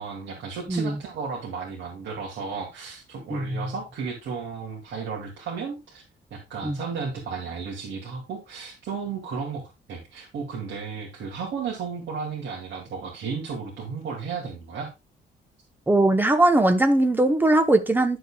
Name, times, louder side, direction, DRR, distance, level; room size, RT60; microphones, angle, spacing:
voice 1, 0.0-6.0 6.3-9.6 9.9-14.9, right 5 dB, 70° right, 2.4 m, -34 dB
voice 2, 0.7-1.0 3.3-3.7 6.6-6.8 15.9-18.2, right 2 dB, 10° right, 0.9 m, -20 dB
11.0 x 6.7 x 2.3 m
cardioid pair, 160°, 19 cm